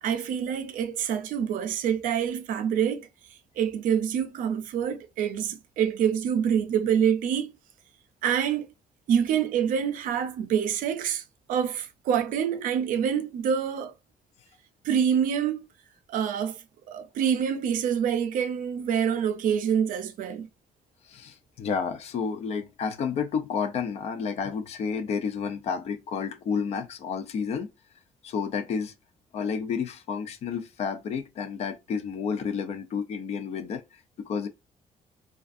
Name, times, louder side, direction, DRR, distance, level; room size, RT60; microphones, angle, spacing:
voice 1, 0.0-3.1 3.6-7.5 8.2-8.7 9.1-11.2 11.5-13.9 14.8-15.7 16.1-20.5, right 8 dB, 75° right, 0.4 m, -26 dB
voice 2, 21.1-27.7 28.2-28.9 29.3-33.8 34.2-34.5, left 6 dB, 50° left, 0.4 m, -30 dB
2.4 x 2.2 x 2.4 m
cardioid pair, 175°, 14 cm